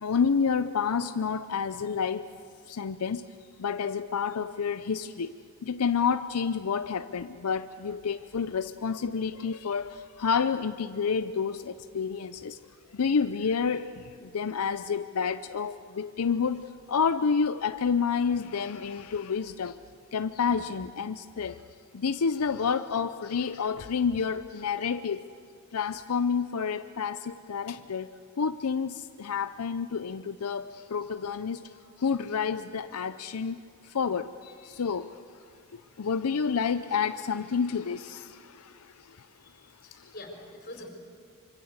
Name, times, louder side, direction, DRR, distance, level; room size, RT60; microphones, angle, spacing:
voice 1, 0.0-2.3 2.6-3.2 3.6-5.4 5.6-12.6 12.9-19.8 20.1-21.6 21.9-25.3 25.7-35.4 35.7-39.3 39.9-40.1, left 6 dB, 85° left, 11 dB, 0.6 m, -29 dB
voice 2, 39.5-40.9, left 1 dB, 45° left, 3 dB, 4.5 m, -45 dB
25.5 x 24.5 x 8.0 m, 2.6 s
head